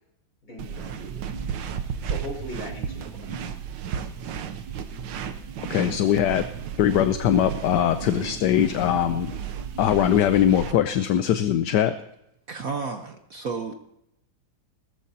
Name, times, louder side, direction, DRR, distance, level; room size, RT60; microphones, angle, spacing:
voice 1, 0.4-1.2 2.0-3.4, equal, 50° left, -2 dB, 6.2 m, -39 dB
sound 1, 0.6-10.7, right 7 dB, 75° right, 1.5 m, -34 dB
voice 2, 5.7-6.4 6.8-9.3 9.8-12.0, left 10 dB, 70° left, 10 dB, 1.3 m, -21 dB
voice 3, 12.5-13.7, right 4 dB, 55° right, 6 dB, 1.3 m, -32 dB
19.0 x 14.0 x 2.8 m, 0.81 s
omnidirectional pair, 2.1 m